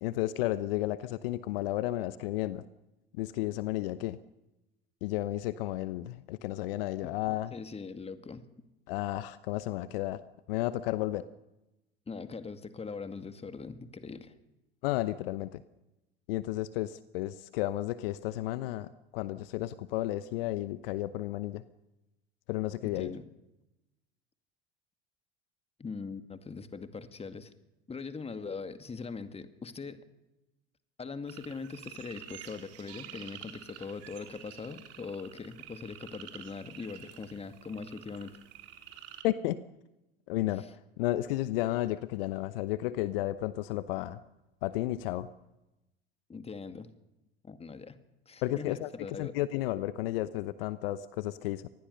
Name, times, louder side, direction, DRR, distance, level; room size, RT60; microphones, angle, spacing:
voice 1, 0.0-2.6 3.1-4.2 5.0-7.5 8.9-10.2 10.5-11.3 14.8-15.6 16.3-21.6 22.5-23.1 39.2-39.6 40.3-40.7 41.0-44.2 44.6-45.3 48.4-51.7, left 16 dB, 60° left, 16 dB, 0.9 m, -32 dB
voice 2, 7.5-8.5 12.1-14.4 22.8-23.2 25.8-27.5 27.9-30.0 31.0-38.4 40.5-40.7 46.3-46.9 47.4-48.0 48.3-49.3, left 4 dB, 20° left, 10 dB, 2.1 m, -41 dB
sound 1, 31.3-39.2, right 11 dB, 50° right, 3.5 m, -49 dB
25.5 x 20.0 x 6.8 m, 0.98 s
figure-of-eight pair, 75°, 32 cm